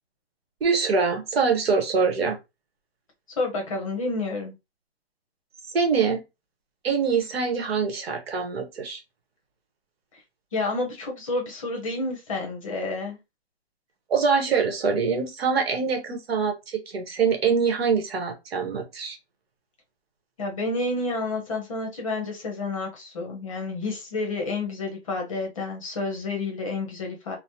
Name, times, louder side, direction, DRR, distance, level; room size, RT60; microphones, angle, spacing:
voice 1, 0.6-2.4 5.7-6.2 6.8-9.0 14.1-19.2, right 5 dB, 65° right, 1.0 m, -24 dB
voice 2, 3.4-4.5 10.5-13.2 20.4-27.4, left 3 dB, 30° left, 0.7 m, -29 dB
3.1 x 2.0 x 2.7 m
hypercardioid pair, 165°, 33 cm